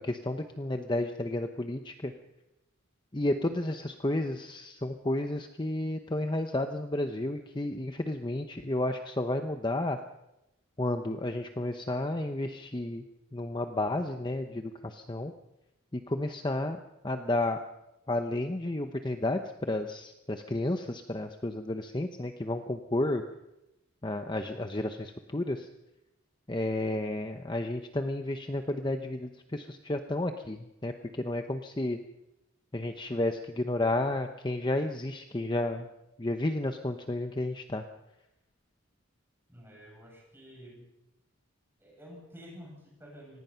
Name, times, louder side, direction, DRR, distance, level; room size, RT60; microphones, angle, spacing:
voice 1, 0.0-2.1 3.1-10.0 10.8-13.0 13.3-15.3 15.9-16.8 17.0-17.6 18.1-23.2 24.0-25.7 26.5-32.0 32.7-35.9 36.2-37.8, left 1 dB, 20° left, 6 dB, 0.8 m, -32 dB
voice 2, 39.5-40.9 41.8-43.4, equal, 10° right, -2 dB, 7.6 m, -50 dB
25.0 x 19.0 x 5.8 m, 0.90 s
head